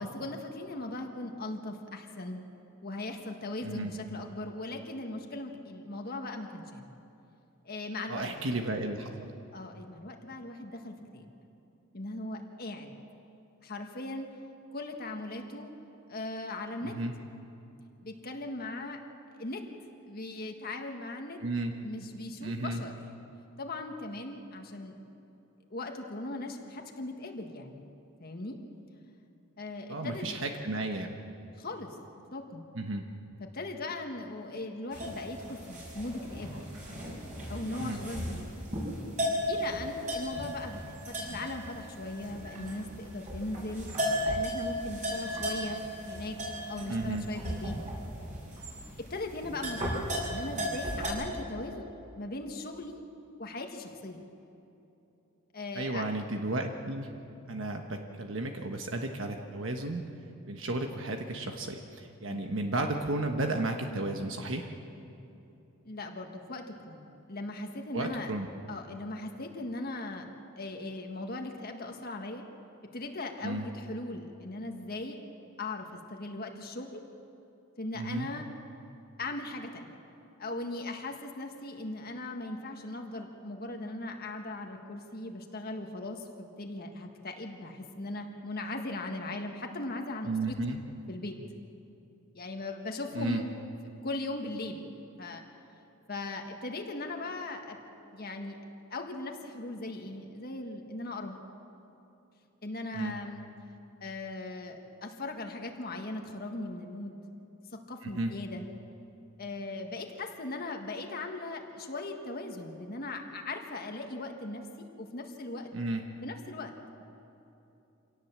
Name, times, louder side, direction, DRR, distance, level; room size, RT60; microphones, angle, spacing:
voice 1, 0.0-2.4 2.8-6.9 7.6-8.3 9.5-11.4 11.9-13.0 13.6-14.3 14.7-15.7 16.1-17.0 18.0-19.0 19.3-19.7 20.1-21.4 21.8-22.9 23.6-25.0 25.7-27.9 28.2-28.6 29.6-30.4 31.6-31.9 32.3-32.6 33.4-36.6 37.5-38.4 39.5-43.9 44.2-46.4 46.7-47.8 49.0-51.9 52.1-53.0 53.4-54.2 55.5-56.0 62.3-62.5 65.8-68.3 68.7-70.3 70.6-72.4 72.8-75.2 75.6-77.0 77.8-78.5 79.2-80.0 80.4-90.8 91.1-91.4 92.3-93.5 94.0-94.8 95.2-95.4 96.1-97.8 98.1-98.6 98.9-101.4 102.6-103.4 104.0-107.2 107.7-108.7 109.4-115.7 116.2-116.7, left 2 dB, 45° left, 3 dB, 1.7 m, -39 dB
voice 2, 8.1-9.1 16.8-17.1 21.4-21.7 22.4-22.8 29.9-31.1 32.7-33.0 37.8-38.0 46.9-47.2 55.7-57.1 57.5-60.1 60.5-64.7 67.9-68.5 73.4-73.7 77.9-78.3 90.2-90.8 93.1-93.4 102.9-103.1 108.0-108.3 115.7-116.0, right 2 dB, 65° right, 4 dB, 1.3 m, -33 dB
sound 1, 34.9-51.1, equal, 35° right, 6.4 m, -36 dB
26.0 x 18.0 x 7.4 m, 2.9 s
head